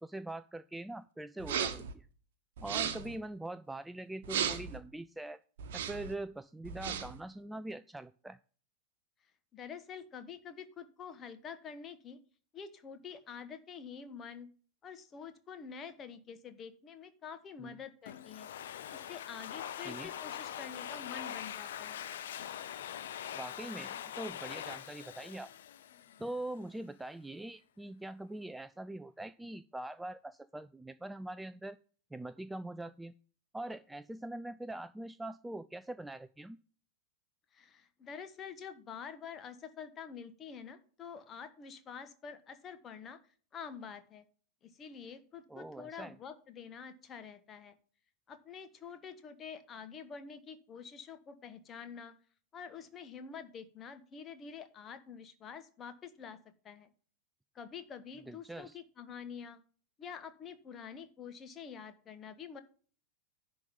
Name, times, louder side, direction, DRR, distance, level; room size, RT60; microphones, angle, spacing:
voice 1, 0.0-2.1 2.6-5.4 5.7-8.4 17.6-17.8 19.8-20.1 23.3-25.5 26.2-31.8 32.1-33.1 33.5-36.6 45.5-46.2 58.3-58.8, right 1 dB, 5° right, 14 dB, 0.3 m, -43 dB
sound 1, 1.4-1.9 2.6-3.1 4.2-4.8 5.6-6.1 6.6-7.2, right 8 dB, 55° right, 1.1 m, -35 dB
voice 2, 9.5-12.2 12.5-14.5 14.8-18.5 18.9-22.0 37.5-43.2 43.5-44.2 44.6-47.8 48.3-52.1 52.5-56.4 56.6-56.9 57.5-59.6 60.0-62.6, left 6 dB, 25° left, 10 dB, 1.2 m, -47 dB
Domestic sounds home sounds, 18.1-26.5, left 10 dB, 60° left, 0.6 m, -43 dB
10.5 x 3.8 x 7.1 m, 0.42 s
figure-of-eight pair, 90°, 0 cm